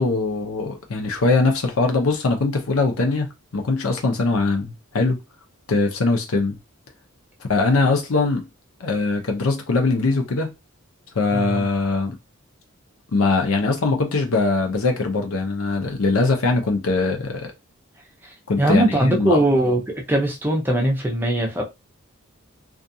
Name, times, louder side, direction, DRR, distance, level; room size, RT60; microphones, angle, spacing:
voice 1, 0.0-3.3 3.5-5.2 5.7-6.6 7.5-8.5 8.8-10.5 11.1-12.2 13.1-17.5 18.5-19.4, left 3 dB, 80° left, 0.7 m, -21 dB
voice 2, 11.3-11.7 18.6-19.8 20.1-21.6, right 1 dB, 10° right, 0.6 m, -20 dB
2.4 x 2.3 x 2.7 m
head